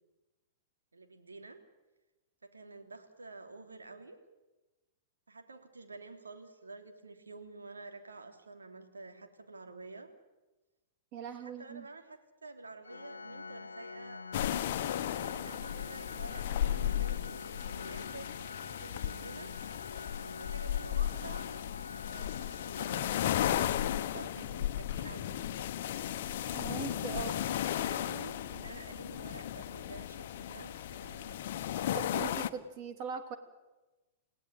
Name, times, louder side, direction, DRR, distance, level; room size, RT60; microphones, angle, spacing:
voice 1, 0.9-1.6 2.4-4.2 5.3-10.1 11.4-14.6 15.2-18.4 18.7-19.5 20.2-21.4 22.0-25.7 27.1-31.4, right 3 dB, 80° right, 6 dB, 3.1 m, -49 dB
voice 2, 11.1-11.9 26.5-27.3 31.9-33.4, right 6 dB, 45° right, 8 dB, 3.2 m, -40 dB
Organ, 12.8-23.7, left 4 dB, 80° left, 0.8 m, -46 dB
sound 1, 14.3-32.5, left 11 dB, 55° left, 1.1 m, -35 dB
29.0 x 17.5 x 9.3 m, 1.1 s
figure-of-eight pair, 105°, 0 cm